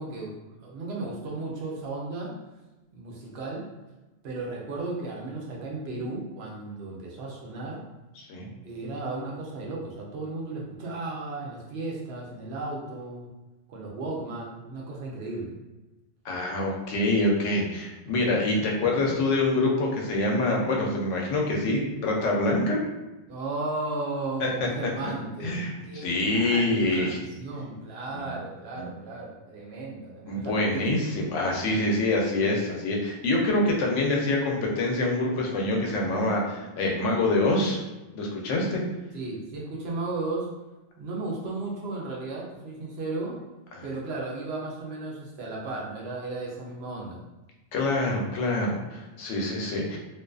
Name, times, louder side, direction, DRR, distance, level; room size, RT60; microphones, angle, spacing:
voice 1, 0.0-2.3 2.9-3.7 4.2-7.8 8.6-13.3 13.7-15.5 18.3-18.7 19.0-19.2 23.3-30.9 39.1-40.5 41.0-43.4 43.8-47.2, right 2 dB, 65° right, -2 dB, 0.8 m, -35 dB
voice 2, 8.2-8.5 16.2-22.8 24.4-24.9 25.4-27.2 28.1-28.3 28.8-28.9 30.3-37.8 38.1-38.8 43.7-43.8 47.7-50.0, left 2 dB, 90° left, -1 dB, 0.9 m, -26 dB
2.5 x 2.3 x 2.3 m, 1.1 s
omnidirectional pair, 1.2 m